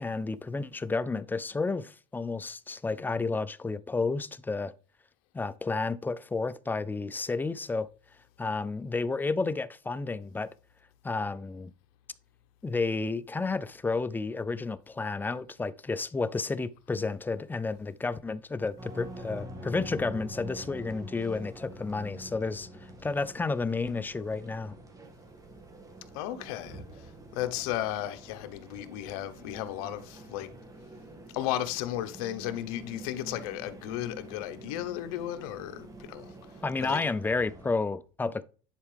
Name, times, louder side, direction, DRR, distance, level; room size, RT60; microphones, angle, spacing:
voice 1, 0.0-4.7 5.3-7.9 8.4-10.5 11.0-11.7 12.6-24.7 36.6-38.4, left 3 dB, 10° left, 0.4 m, -31 dB
sound 1, 18.8-37.7, right 1 dB, 20° right, 1.9 m, -46 dB
voice 2, 26.1-26.8 27.3-30.5 31.3-36.3 36.8-37.0, left 13 dB, 80° left, 1.0 m, -34 dB
10.5 x 4.5 x 3.4 m
supercardioid pair, 130°, 18 cm